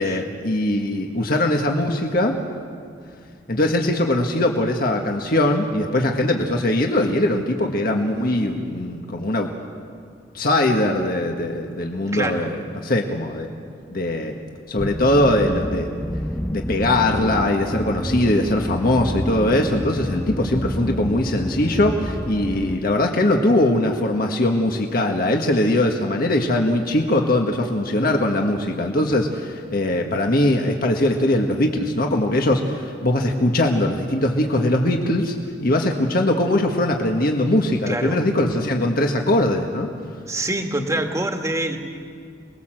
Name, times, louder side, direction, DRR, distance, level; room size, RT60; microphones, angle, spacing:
voice 1, 0.0-2.3 3.5-9.5 10.3-13.5 13.9-14.4 14.7-15.9 16.5-35.3 35.6-39.9, left 1 dB, 50° left, 2 dB, 1.6 m, -21 dB
voice 2, 12.1-12.5 19.9-20.1 37.9-38.2 40.3-41.8, right 1 dB, 15° right, 4 dB, 1.9 m, -26 dB
sound 1, 14.8-22.8, equal, 5° left, 0.6 m, -28 dB
28.0 x 20.5 x 7.7 m, 2.2 s
head